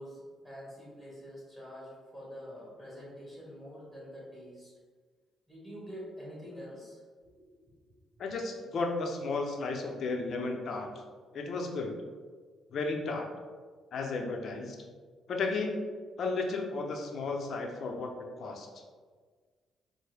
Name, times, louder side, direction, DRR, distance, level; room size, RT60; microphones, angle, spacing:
voice 1, 0.0-4.7 5.5-7.0 7.5-8.0, equal, 10° right, -6 dB, 1.5 m, -46 dB
voice 2, 8.2-10.9 11.3-11.9 12.7-13.3 13.9-14.8 15.3-15.9 16.2-18.1 18.4-18.7, left 3 dB, 60° left, 2 dB, 0.6 m, -33 dB
4.4 x 2.0 x 3.3 m, 1.5 s
cardioid pair, 90°, 0 cm